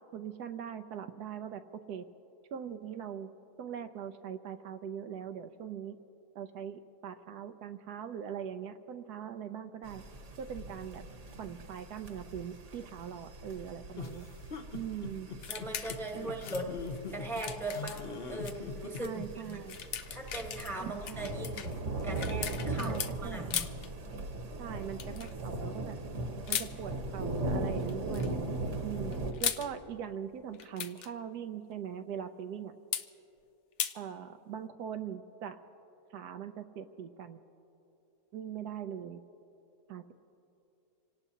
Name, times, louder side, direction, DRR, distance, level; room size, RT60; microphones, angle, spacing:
voice 1, 0.1-1.6 1.9-2.1 2.5-3.3 3.6-6.0 6.3-10.0 10.4-11.0 11.4-14.3 14.7-15.3 16.1-16.3 19.0-19.8 20.8-21.3 22.8-23.5 24.6-26.0 26.5-28.4 28.8-29.1 29.4-32.7 33.9-35.6 36.1-37.4 38.3-39.2 39.9-40.1, right 8 dB, 75° right, 8 dB, 1.1 m, -41 dB
sound 1, 9.8-29.3, right 2 dB, 50° right, 1.4 m, -39 dB
sound 2, 13.9-19.3, left 4 dB, 45° left, 0.9 m, -42 dB
sound 3, 15.4-16.1 16.4-18.6 18.9-19.1 19.5-23.1 23.5-23.9 25.0-25.3 26.5-26.7 27.9-28.3 29.1-29.7 30.5-31.1 32.9-33.1 33.8-34.0, left 8 dB, 70° left, 0.7 m, -37 dB
voice 2, 15.5-16.7 17.1-19.6 20.1-21.7 22.0-23.7, right 2 dB, ahead, 1 dB, 1.1 m, -39 dB
27.0 x 18.0 x 2.8 m, 2.9 s
omnidirectional pair, 1.8 m